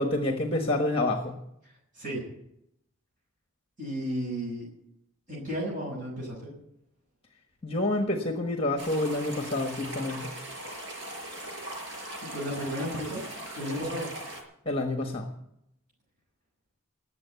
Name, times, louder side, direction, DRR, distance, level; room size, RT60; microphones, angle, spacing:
voice 1, 0.0-1.4 7.6-10.3 14.6-15.3, left 2 dB, 25° left, 4 dB, 1.3 m, -28 dB
voice 2, 3.8-4.7 5.3-6.5 12.3-13.2 13.5-14.1, equal, 35° right, -5 dB, 6.3 m, -33 dB
sound 1, 8.8-14.4, right 1 dB, 55° right, 5.4 m, -39 dB
20.0 x 7.7 x 8.2 m, 0.79 s
head